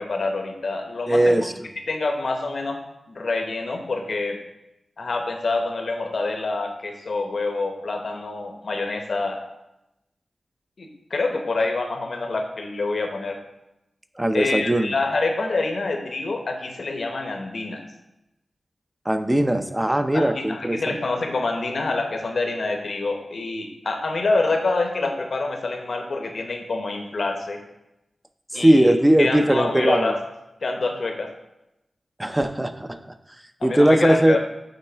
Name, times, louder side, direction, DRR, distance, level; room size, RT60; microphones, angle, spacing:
voice 1, 0.0-1.5 1.9-2.8 3.1-4.4 5.0-9.4 10.8-13.4 14.3-17.8 20.1-27.6 28.5-28.9 29.2-30.2 30.6-31.3 33.6-34.4, left 3 dB, 70° left, 4 dB, 0.9 m, -26 dB
voice 2, 1.1-1.7 14.2-14.9 19.1-21.0 28.5-30.2 32.2-33.0 33.6-34.4, right 1 dB, 15° right, 9 dB, 0.5 m, -19 dB
9.0 x 3.2 x 4.4 m, 0.91 s
cardioid pair, 50°, 0 cm